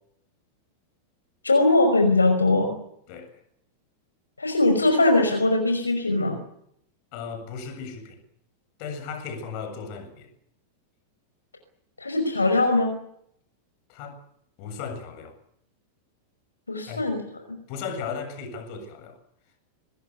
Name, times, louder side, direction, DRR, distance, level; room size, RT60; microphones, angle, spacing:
voice 1, 1.4-2.7 4.4-6.4 12.0-12.9 16.7-17.2, left 2 dB, 80° left, 5.6 m, -21 dB
voice 2, 3.1-3.4 7.1-8.2 8.8-10.3 13.9-14.2 14.6-15.4 16.9-17.0 17.7-19.2, left 5 dB, 45° left, 7.6 m, -36 dB
24.0 x 20.5 x 8.4 m
figure-of-eight pair, 90°, 0 cm